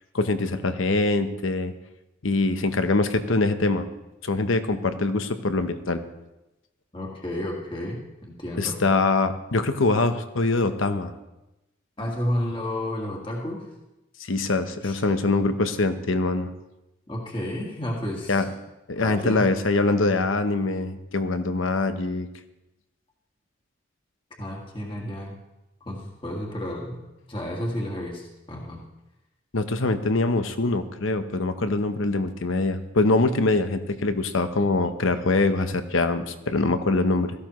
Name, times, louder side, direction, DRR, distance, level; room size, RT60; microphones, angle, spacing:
voice 1, 0.1-1.7 2.2-3.9 4.2-6.0 8.6-11.1 14.2-16.5 18.3-18.5 18.9-22.3 29.5-37.3, left 3 dB, 80° left, 9 dB, 0.9 m, -23 dB
voice 2, 6.9-8.8 12.0-13.6 14.8-15.0 17.1-18.5 19.0-19.5 24.4-25.3 25.8-27.0 27.3-28.8, left 1 dB, 25° left, -1 dB, 1.8 m, -31 dB
16.5 x 14.5 x 3.1 m, 0.96 s
head